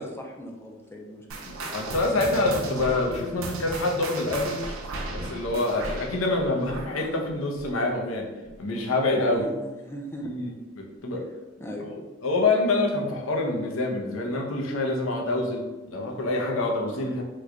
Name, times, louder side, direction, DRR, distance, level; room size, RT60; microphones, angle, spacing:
voice 1, 0.0-1.4 9.3-10.3 11.6-11.9, equal, 10° left, 1 dB, 0.4 m, -39 dB
sound 1, 1.3-8.2 8.4-8.7 9.3-9.4 10.2-10.3, right 2 dB, 90° right, 0.5 m, -36 dB
voice 2, 1.5-4.6 5.1-8.3 8.6-9.5 10.2-11.3 11.8-17.2, left 2 dB, 85° left, 1 dB, 0.6 m, -26 dB
3.1 x 2.2 x 3.6 m, 1.2 s
head